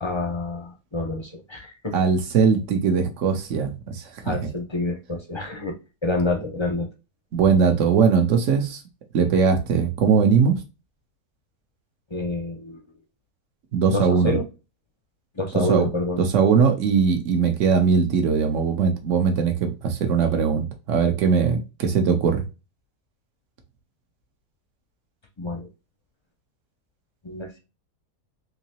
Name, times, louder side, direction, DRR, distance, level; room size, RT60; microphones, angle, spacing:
voice 1, 0.0-2.0 4.2-5.8 6.0-6.9 12.1-12.8 13.9-14.4 15.4-16.2 25.4-25.7 27.2-27.6, left 2 dB, 30° left, 0.5 m, -28 dB
voice 2, 1.9-4.4 7.3-8.8 9.1-10.5 13.7-14.3 15.7-15.9 16.2-22.4, right 6 dB, 60° right, 1.1 m, -20 dB
3.9 x 2.8 x 2.8 m
omnidirectional pair, 1.5 m